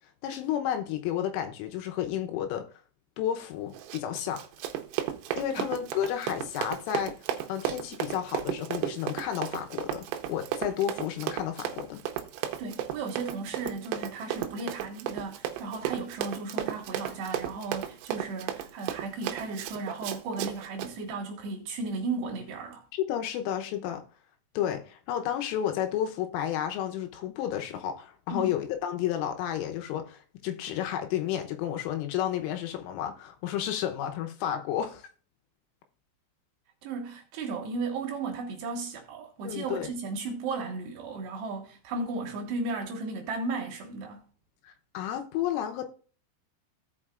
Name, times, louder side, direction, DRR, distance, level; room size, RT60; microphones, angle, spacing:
voice 1, 0.2-2.7 3.2-4.4 5.4-7.2 7.5-12.0 22.9-24.0 24.6-35.1 39.5-39.9 44.7-45.9, left 10 dB, 85° left, 3.4 m, -31 dB
Run, 3.7-20.9, right 10 dB, 85° right, 3.3 m, -35 dB
voice 2, 12.6-22.8 28.3-28.6 36.8-44.3, right 3 dB, 65° right, 3.4 m, -35 dB
17.0 x 5.7 x 2.4 m
omnidirectional pair, 5.7 m